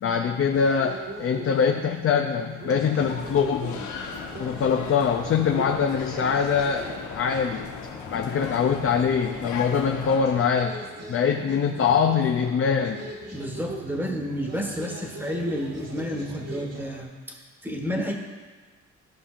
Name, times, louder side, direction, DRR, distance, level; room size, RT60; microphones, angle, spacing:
voice 1, 0.0-3.8 4.4-7.7 8.1-10.8 11.1-13.0, left 6 dB, 45° left, 3 dB, 0.6 m, -23 dB
sound 1, 0.5-17.0, right 2 dB, 55° right, 1.7 m, -41 dB
sound 2, 3.0-10.2, left 5 dB, 75° left, 1.1 m, -37 dB
voice 2, 13.3-18.1, equal, 5° right, 1 dB, 1.5 m, -31 dB
14.0 x 5.6 x 2.5 m, 1.4 s
cardioid pair, 90°, 30 cm